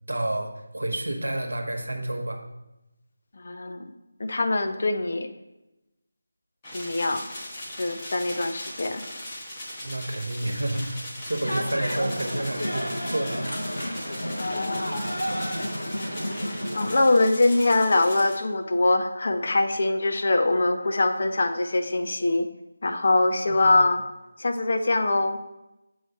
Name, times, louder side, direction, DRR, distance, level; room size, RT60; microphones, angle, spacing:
voice 1, 0.1-2.4 9.8-13.7 13.9-14.1 23.5-23.8, right 1 dB, 75° right, 3 dB, 1.1 m, -30 dB
voice 2, 3.4-3.8 4.2-5.3 6.7-7.2 7.7-9.0 14.3-15.0 16.7-22.5 22.8-24.0 24.4-25.4, left 2 dB, 50° left, 7 dB, 0.6 m, -23 dB
sound 1, 6.6-18.4, left 1 dB, 25° left, 1.5 m, -39 dB
sound 2, 11.4-16.9, equal, 80° left, 1.1 m, -31 dB
7.9 x 3.1 x 5.6 m, 0.96 s
figure-of-eight pair, 160°, 0 cm